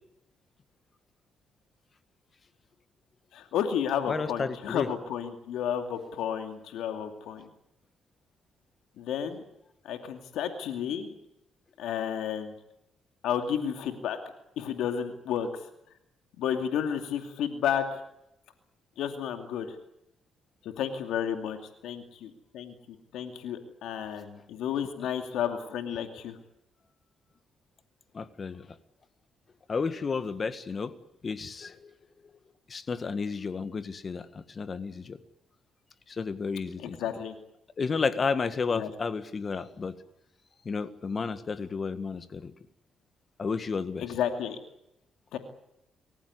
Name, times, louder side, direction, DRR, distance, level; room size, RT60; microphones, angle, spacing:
voice 1, 3.3-7.5 9.0-9.4 9.8-11.1 11.8-12.5 13.2-14.2 14.6-15.6 16.4-18.0 19.0-19.7 20.6-21.6 21.8-26.4 36.8-37.3 38.7-38.9 44.0-44.6 45.3-45.4, left 8 dB, 85° left, 6 dB, 2.5 m, -32 dB
voice 2, 4.1-4.9 28.1-28.8 29.7-30.9 31.2-31.9 32.7-35.2 36.1-37.0 37.8-40.0 40.6-42.5 43.4-44.2, left 5 dB, 40° left, 12 dB, 1.7 m, -32 dB
28.0 x 15.0 x 9.6 m, 0.83 s
cardioid pair, 90°, 0 cm